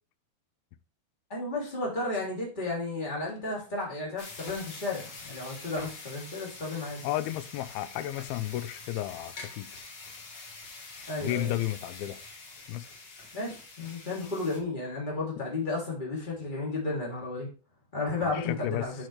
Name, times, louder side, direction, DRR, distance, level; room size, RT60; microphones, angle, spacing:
voice 1, 1.3-7.0 11.1-11.5 13.3-17.5 17.9-18.9, left 2 dB, 15° left, 2.4 m, -33 dB
sound 1, 4.2-14.6, left 3 dB, 65° left, 1.0 m, -45 dB
voice 2, 7.0-9.7 11.2-12.2 12.7-12.9 18.2-18.9, left 14 dB, 90° left, 2.5 m, -33 dB
8.8 x 6.3 x 3.2 m
omnidirectional pair, 4.3 m